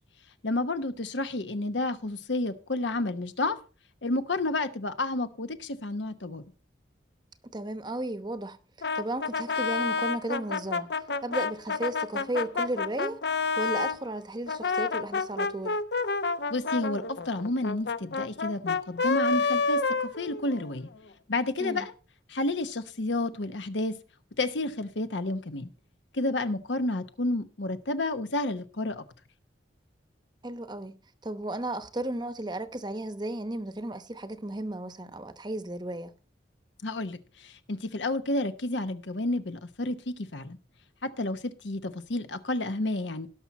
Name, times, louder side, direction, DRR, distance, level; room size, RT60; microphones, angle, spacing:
voice 1, 0.4-3.6 4.0-6.4 16.5-20.9 21.3-21.9 22.3-24.0 24.4-25.7 26.1-29.0 36.8-40.6 41.0-43.3, left 2 dB, 75° left, 1.0 m, -30 dB
voice 2, 7.4-8.6 8.9-10.9 11.2-13.2 13.6-15.8 21.6-21.9 30.4-30.9 31.2-36.1, right 1 dB, 25° right, 0.9 m, -34 dB
Brass instrument, 8.8-14.0 14.5-20.8, left 4 dB, 60° left, 0.7 m, -29 dB
18.0 x 6.1 x 4.2 m
head